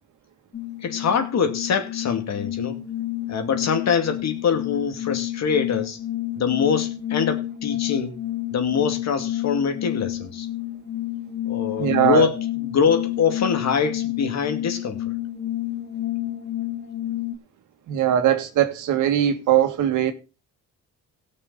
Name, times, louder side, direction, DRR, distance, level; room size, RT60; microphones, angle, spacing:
sound 1, 0.5-17.4, left 14 dB, 35° left, 1.2 m, -30 dB
voice 1, 0.8-2.8 3.3-6.0 6.4-8.2 8.5-10.5 11.5-15.0, left 6 dB, 60° left, 2.4 m, -24 dB
voice 2, 11.8-12.3 17.9-20.1, right 10 dB, 85° right, 1.9 m, -20 dB
17.5 x 6.5 x 3.8 m
cardioid pair, 90°, 30 cm